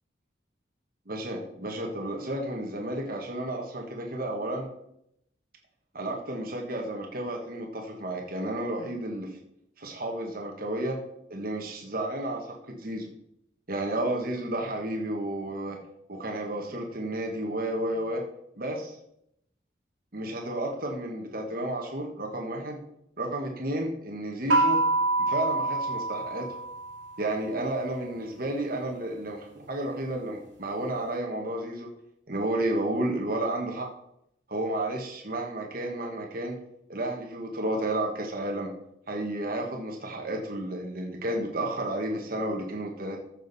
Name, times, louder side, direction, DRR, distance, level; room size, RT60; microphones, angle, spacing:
voice 1, 1.1-4.7 5.9-9.4 9.8-11.0 11.3-13.1 13.7-15.8 16.1-18.2 18.6-19.0 20.1-22.8 23.2-24.8 25.3-26.6 27.2-31.9 32.3-33.9 34.5-36.6 36.9-38.7 39.1-43.2, right 1 dB, 50° right, 1 dB, 1.4 m, -32 dB
sound 1, 24.5-27.2, right 2 dB, 80° right, 2.4 m, -26 dB
14.5 x 6.4 x 4.1 m, 0.77 s
head